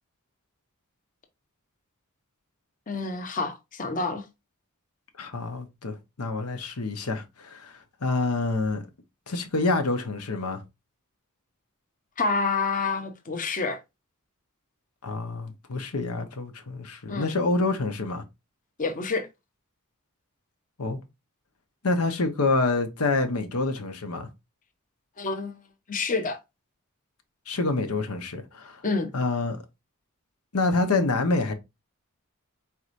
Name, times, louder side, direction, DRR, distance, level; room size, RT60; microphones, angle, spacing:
voice 1, 2.9-4.2 12.2-13.8 17.1-17.3 18.8-19.3 25.2-25.5 25.9-26.4 28.8-29.1, left 4 dB, 35° left, 0.8 m, -28 dB
voice 2, 5.2-8.8 9.3-10.6 15.0-18.2 20.8-21.0 21.8-24.3 27.5-28.8 29.1-29.6 30.5-31.5, left 3 dB, 90° left, 1.0 m, -27 dB
4.8 x 4.3 x 2.6 m
head